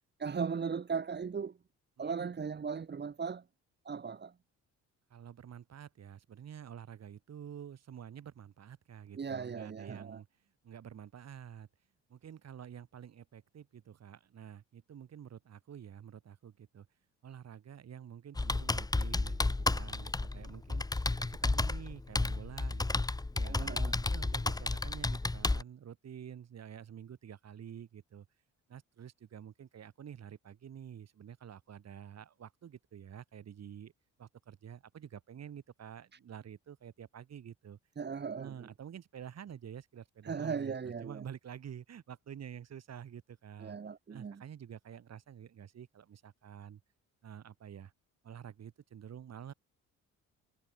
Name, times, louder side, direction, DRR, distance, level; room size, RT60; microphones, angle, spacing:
voice 1, 0.2-1.6 2.0-3.4 3.9-4.3 9.1-10.2 23.4-24.0 38.0-38.7 40.2-41.2 43.6-44.4, right 6 dB, 35° right, 1.8 m, -37 dB
voice 2, 2.0-2.3 5.1-10.3 10.6-11.7 12.1-16.9 17.2-23.0 23.3-28.3 28.7-33.9 34.2-37.8 38.4-43.8 44.1-46.8 47.2-47.9 48.2-49.5, right 9 dB, 60° right, 6.1 m, -49 dB
Computer keyboard, 18.4-25.6, left 2 dB, 10° left, 1.1 m, -32 dB
cardioid pair, 90°, 30 cm